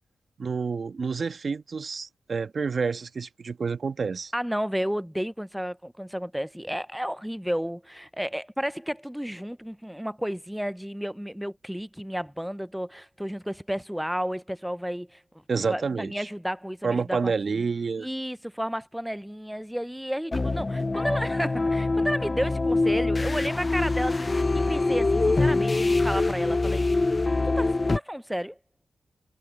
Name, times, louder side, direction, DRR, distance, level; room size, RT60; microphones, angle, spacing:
voice 1, 0.4-4.3 15.5-16.3 16.8-18.1, right 5 dB, 65° right, 1.4 m, -28 dB
voice 2, 4.3-15.2 15.6-17.7 18.0-26.9 27.6-28.6, equal, 5° right, 0.7 m, -32 dB
sound 1, 20.3-28.0, left 3 dB, 35° left, 0.4 m, -24 dB
cardioid pair, 50°, 0 cm